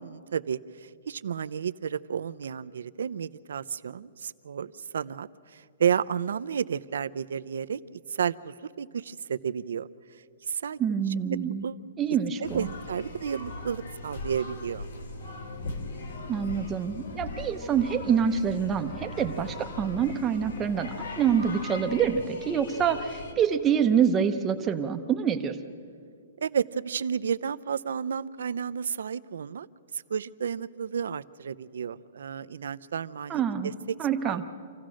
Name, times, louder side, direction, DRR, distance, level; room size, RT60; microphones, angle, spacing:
voice 1, 0.0-9.9 10.5-10.8 11.3-11.4 11.6-11.8 12.4-14.9 26.4-29.7 29.9-34.0 34.2-34.5, right 7 dB, 80° right, 14 dB, 0.6 m, -32 dB
voice 2, 10.8-11.6 12.0-12.7 16.3-25.6 33.3-33.7 34.0-34.4, right 7 dB, 10° right, 6 dB, 0.7 m, -26 dB
sound 1, 12.4-23.3, left 2 dB, 70° left, 2.5 m, -39 dB
27.0 x 15.5 x 6.3 m, 2.3 s
hypercardioid pair, 180°, 0 cm